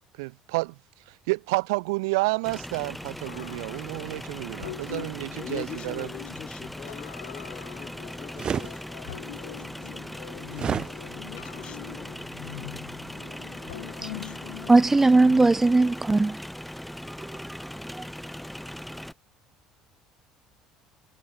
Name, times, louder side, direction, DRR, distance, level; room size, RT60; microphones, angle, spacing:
voice 1, 0.2-0.8 1.3-6.1, right 25 dB, 75° right, 2.0 m, -30 dB
sound 1, 2.4-19.1, equal, 5° left, 3.0 m, -39 dB
sound 2, 3.2-15.8, left 16 dB, 80° left, 1.6 m, -44 dB
voice 2, 5.3-10.4 11.3-12.2 13.4-14.6, left 11 dB, 55° left, 3.6 m, -44 dB
sound 3, 8.4-8.7 10.5-10.9, right 7 dB, 40° right, 1.0 m, -28 dB
voice 3, 14.7-16.4 17.3-17.6 17.9-18.0, right 3 dB, 15° right, 0.3 m, -19 dB
hypercardioid pair, 65°, 2 cm